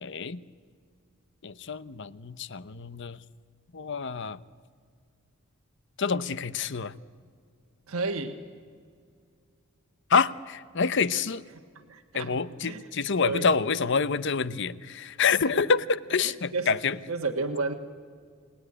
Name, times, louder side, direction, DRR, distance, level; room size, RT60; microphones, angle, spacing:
voice 1, 0.0-0.4 1.4-3.2 3.7-4.4 6.0-6.9 10.1-11.4 12.1-17.0, left 5 dB, 55° left, 16 dB, 0.8 m, -27 dB
voice 2, 7.9-8.4 11.9-12.9 13.2-13.5 15.3-15.5 16.2-16.7 17.1-17.7, right 3 dB, 80° right, 4 dB, 1.4 m, -32 dB
29.0 x 19.5 x 9.8 m, 2.2 s
head